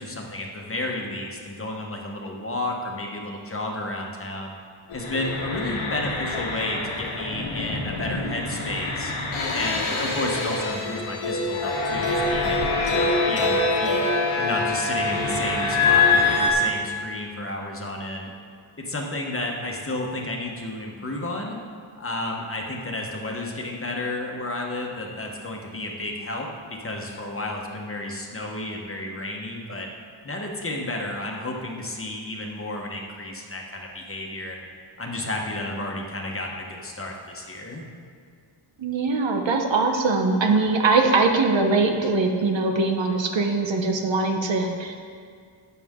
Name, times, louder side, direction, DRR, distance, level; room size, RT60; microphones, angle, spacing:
voice 1, 0.0-4.5 4.9-9.1 9.5-14.0 14.4-18.3 18.8-21.6 22.0-29.9 30.2-34.6 35.0-37.8, left 1 dB, 25° left, 0 dB, 1.2 m, -32 dB
sound 1, 4.9-16.5, left 3 dB, 85° left, 1.7 m, -25 dB
voice 2, 38.8-45.0, right 3 dB, 65° right, 4 dB, 1.1 m, -22 dB
13.0 x 9.1 x 3.7 m, 2.1 s
wide cardioid pair, 160°, 48 cm